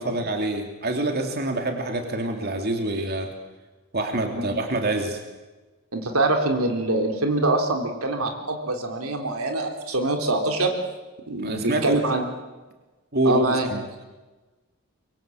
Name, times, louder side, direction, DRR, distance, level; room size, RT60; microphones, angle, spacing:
voice 1, 0.0-3.3 3.9-5.2 11.4-12.0 13.1-13.8, right 1 dB, 45° right, 4 dB, 2.8 m, -26 dB
voice 2, 5.9-10.7 11.3-12.2 13.2-13.7, right 2 dB, 80° right, 4 dB, 3.4 m, -24 dB
25.0 x 23.0 x 7.8 m, 1.2 s
head